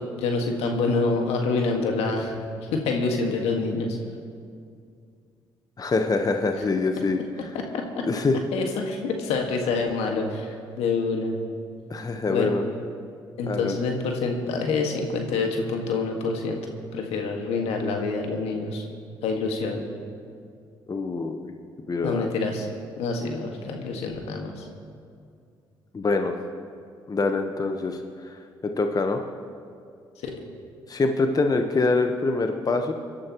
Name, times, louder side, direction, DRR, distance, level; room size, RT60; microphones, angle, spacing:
voice 1, 0.1-4.0 7.5-8.0 8.5-11.4 12.3-12.6 13.4-16.6 16.9-18.9 19.2-19.8 22.0-22.7 23.0-24.6 30.2-30.3, left 3 dB, 70° left, 3 dB, 1.8 m, -27 dB
voice 2, 5.8-7.2 8.1-8.4 11.9-12.6 13.5-13.8 20.9-21.5 21.9-22.3 25.9-26.3 27.1-28.0 28.2-28.3 28.6-29.2 30.9-32.9, left 3 dB, 35° left, 5 dB, 1.2 m, -24 dB
24.5 x 12.0 x 3.1 m, 2.3 s
hypercardioid pair, 50°, 11 cm